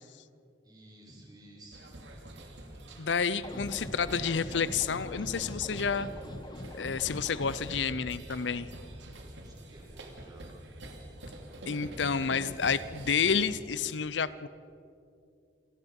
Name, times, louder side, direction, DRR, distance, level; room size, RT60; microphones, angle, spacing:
voice 1, 0.6-1.9 9.4-10.4, right 1 dB, 25° right, -2 dB, 5.0 m, -54 dB
sound 1, 1.7-13.5, right 1 dB, 85° right, 2.9 m, -46 dB
voice 2, 3.0-6.1 6.7-8.7 11.7-14.5, left 6 dB, 90° left, 17 dB, 0.7 m, -30 dB
sound 2, 3.4-7.8, left 1 dB, 25° left, 1.2 m, -42 dB
27.5 x 18.5 x 5.4 m, 2.5 s
head